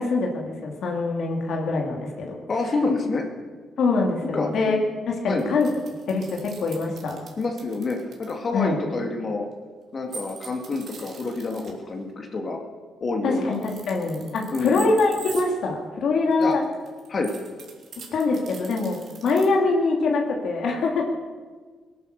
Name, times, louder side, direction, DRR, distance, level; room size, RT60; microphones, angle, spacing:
voice 1, 0.0-2.4 3.8-4.8 5.1-5.7 6.1-7.2 8.5-8.8 13.2-16.6 18.1-19.0 19.2-21.1, left 3 dB, 70° left, 0 dB, 2.5 m, -24 dB
voice 2, 2.5-3.2 4.3-4.5 5.3-5.5 7.4-9.5 9.9-12.6 13.0-13.6 14.5-14.9 16.4-16.5 17.1-17.3, left 3 dB, 40° left, 2 dB, 2.1 m, -27 dB
sound 1, 5.4-8.3 10.1-11.7 13.4-15.4 16.3-19.4, right 5 dB, 60° right, 3.4 m, -42 dB
19.0 x 11.0 x 6.6 m, 1.5 s
cardioid pair, 90°, 0 cm